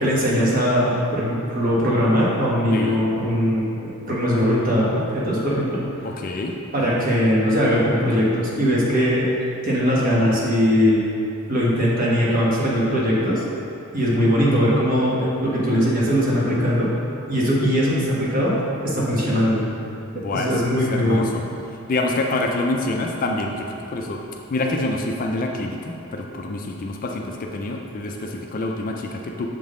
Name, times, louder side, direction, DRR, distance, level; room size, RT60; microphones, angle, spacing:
voice 1, 0.0-5.8 6.7-9.3 9.6-11.0 11.5-13.4 13.9-16.9 17.3-18.5 18.8-19.7 20.1-21.2, equal, 40° right, -6 dB, 1.2 m, -20 dB
voice 2, 6.0-6.5 20.1-20.5 20.9-21.4 21.9-24.2 24.5-29.5, left 2 dB, 40° left, 2 dB, 0.4 m, -26 dB
7.0 x 3.7 x 3.7 m, 2.7 s
head